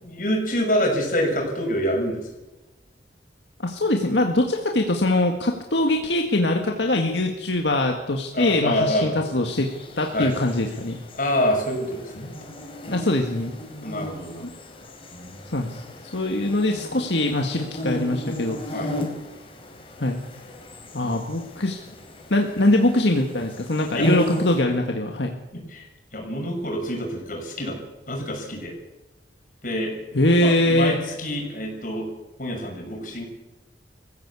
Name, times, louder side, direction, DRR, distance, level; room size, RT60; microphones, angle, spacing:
voice 1, 0.0-2.3 8.3-9.2 10.1-10.3 11.1-12.3 12.9-13.0 13.8-14.5 15.1-15.9 18.7-19.1 23.9-24.1 25.5-25.9 26.1-27.8 28.1-28.8 29.6-30.0 30.3-32.1 32.4-33.2, equal, 50° left, 1 dB, 6.4 m, -27 dB
voice 2, 3.6-9.7 10.0-11.0 12.9-13.5 14.4-14.5 15.5-15.8 16.1-18.9 20.0-20.2 20.9-21.8 22.3-25.3 30.1-31.0, left 1 dB, 80° left, 2 dB, 1.9 m, -22 dB
sound 1, 9.5-24.6, left 1 dB, 30° left, 4.3 m, -34 dB
23.5 x 15.5 x 8.5 m, 1.0 s
head